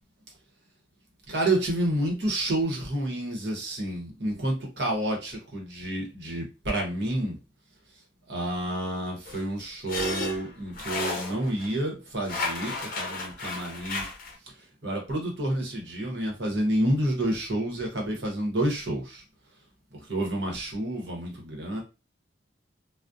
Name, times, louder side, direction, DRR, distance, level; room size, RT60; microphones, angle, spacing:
voice 1, 1.3-7.3 8.3-14.0 14.8-19.2 20.1-21.8, right 1 dB, 60° right, 0 dB, 0.9 m, -29 dB
sound 1, 9.3-11.7 12.2-14.4, left 3 dB, 45° left, 0.6 m, -33 dB
2.3 x 2.0 x 2.6 m, 0.30 s
head